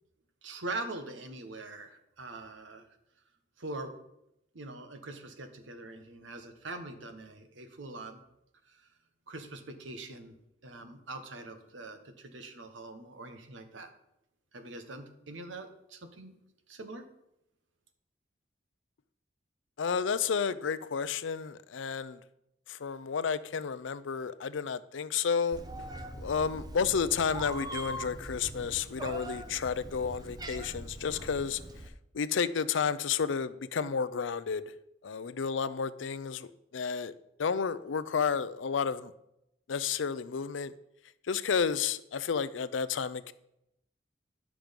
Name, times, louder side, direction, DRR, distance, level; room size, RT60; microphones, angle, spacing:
voice 1, 0.4-2.8 3.6-3.9 4.5-8.2 8.7-8.8 9.3-10.3 10.6-13.9 14.5-16.4 16.7-17.0, right 2 dB, 90° right, 1.2 m, -43 dB
voice 2, 19.8-22.2 22.7-25.6 26.2-31.6 32.1-34.7 35.0-37.1 37.4-39.1 39.7-40.7 41.2-43.3, left 6 dB, 90° left, 0.5 m, -31 dB
Meow, 25.5-31.9, right 1 dB, 20° right, 0.7 m, -42 dB
10.5 x 6.1 x 5.2 m
head